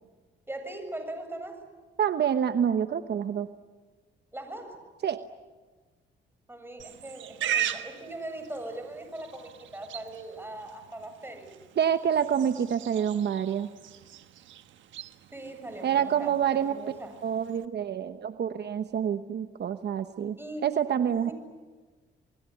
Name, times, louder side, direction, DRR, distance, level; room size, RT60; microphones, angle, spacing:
voice 1, 0.5-1.6 4.3-4.8 6.5-11.6 15.3-17.1 20.4-20.6 21.0-21.3, right 1 dB, 10° right, 6 dB, 7.6 m, -40 dB
voice 2, 2.0-3.5 5.0-5.2 11.8-13.7 15.8-16.8 17.2-21.3, right 8 dB, 60° right, 9 dB, 1.1 m, -27 dB
Livestock farm animals working animals, 6.8-17.7, right 10 dB, 85° right, 1.4 m, -39 dB
28.5 x 21.0 x 10.0 m, 1.3 s
cardioid pair, 75°, 19 cm